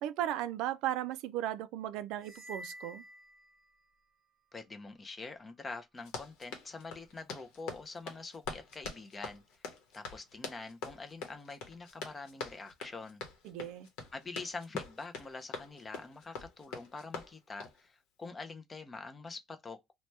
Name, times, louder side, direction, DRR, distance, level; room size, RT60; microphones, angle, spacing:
voice 1, 0.0-3.0 13.4-13.9, right 12 dB, 75° right, 0.3 m, -36 dB
sound 1, 2.2-4.0, equal, 35° right, 0.7 m, -49 dB
voice 2, 4.5-9.4 9.9-13.2 14.1-19.8, left 3 dB, 20° left, 0.4 m, -45 dB
Run, 6.0-17.8, left 4 dB, 85° left, 0.9 m, -44 dB
2.8 x 2.1 x 3.1 m
cardioid pair, 155°, 0 cm